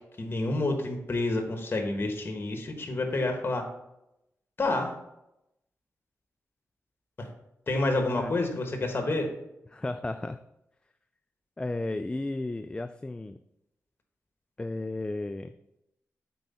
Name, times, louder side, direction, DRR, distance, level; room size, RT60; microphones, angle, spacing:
voice 1, 0.2-3.6 4.6-5.0 7.2-7.3 7.7-9.3, left 2 dB, 40° left, 4 dB, 1.3 m, -28 dB
voice 2, 9.7-10.4 11.6-13.4 14.6-15.5, left 2 dB, 20° left, 9 dB, 0.3 m, -33 dB
7.7 x 4.7 x 4.2 m, 0.86 s
cardioid pair, 70°, 5 cm